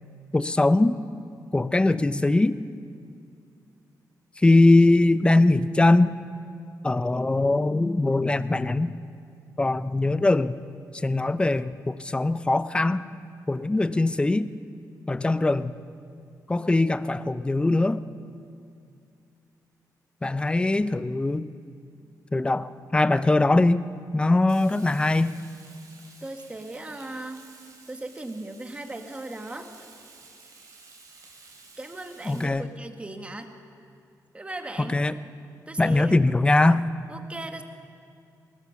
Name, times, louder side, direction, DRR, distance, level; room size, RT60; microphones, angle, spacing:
voice 1, 0.3-1.0 1.5-2.6 4.4-6.1 6.8-8.9 9.6-10.5 10.9-13.1 13.5-14.5 15.1-15.7 16.5-18.0 20.2-21.5 22.3-23.8 24.1-25.4 32.3-32.7 34.8-35.1 35.8-36.8, left 2 dB, 15° left, 14 dB, 0.5 m, -21 dB
Frying (food), 24.5-32.4, right 3 dB, 55° right, 4.7 m, -52 dB
voice 2, 26.2-27.4 27.9-29.7 31.8-33.5 34.3-35.0 35.7-36.1 37.1-37.6, right 2 dB, 15° right, 5 dB, 1.6 m, -37 dB
20.0 x 19.5 x 7.0 m, 2.4 s
cardioid pair, 120°, 7 cm